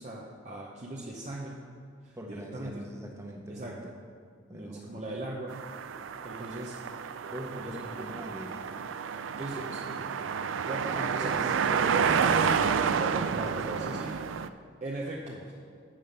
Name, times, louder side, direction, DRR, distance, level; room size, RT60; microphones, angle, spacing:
voice 1, 0.0-1.6 2.0-2.9 3.5-3.9 4.5-5.6 6.2-6.8 7.6-7.9 9.3-10.0 10.7-11.5 11.8-12.7 13.0-14.5 14.8-15.4, right 1 dB, 35° right, -3 dB, 0.8 m, -39 dB
voice 2, 2.2-3.8 4.5-5.0 7.3-8.6 10.9-12.4 13.4-13.6 13.9-14.0, equal, 15° right, 1 dB, 1.0 m, -41 dB
sound 1, 5.5-14.5, right 6 dB, 85° right, 0.4 m, -30 dB
8.8 x 5.5 x 6.5 m, 2.2 s
head